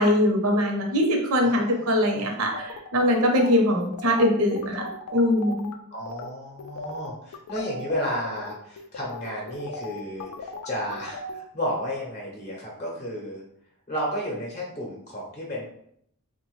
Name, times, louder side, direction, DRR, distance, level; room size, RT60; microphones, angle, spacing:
voice 1, 0.0-4.8 5.1-5.7, left 1 dB, 70° right, 1 dB, 0.7 m, -22 dB
voice 2, 1.4-2.3 5.9-13.4 13.9-15.7, equal, 30° left, -3 dB, 0.7 m, -32 dB
sound 1, 2.5-5.7 6.1-6.3 6.6-11.4, left 3 dB, 85° left, 0.4 m, -38 dB
3.3 x 2.2 x 3.1 m, 0.69 s
head